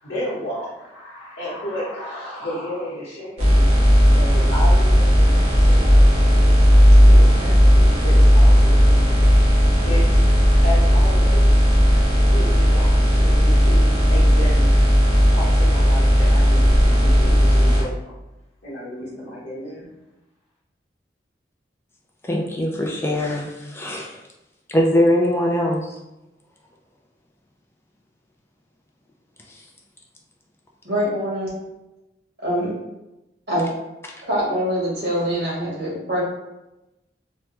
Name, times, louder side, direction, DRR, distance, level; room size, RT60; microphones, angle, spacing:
voice 1, 0.0-6.5 7.1-9.4 9.8-10.2 10.6-11.8 12.3-14.7 15.2-18.1 18.6-19.9, equal, 75° left, -10 dB, 0.9 m, -33 dB
sound 1, 3.4-17.8, equal, 35° right, 0.9 m, -14 dB
voice 2, 22.2-24.2 24.7-25.9, left 1 dB, 15° left, 0 dB, 0.3 m, -21 dB
voice 3, 30.8-31.5 32.4-32.7 33.5-33.6 34.3-36.2, equal, 60° right, -6 dB, 1.4 m, -24 dB
3.3 x 2.1 x 2.9 m, 0.96 s
head